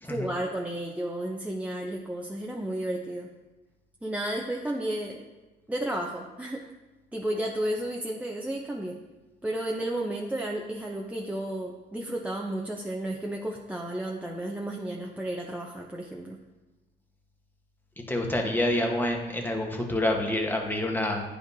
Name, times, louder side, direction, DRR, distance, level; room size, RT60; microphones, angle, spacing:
voice 1, 0.0-3.3 4.0-5.3 5.7-6.6 7.1-9.0 9.4-16.4, right 1 dB, 5° right, 0 dB, 0.6 m, -32 dB
voice 2, 18.1-21.2, left 1 dB, 10° left, 2 dB, 1.1 m, -27 dB
9.6 x 5.1 x 2.7 m, 1.1 s
cardioid pair, 90°, 20 cm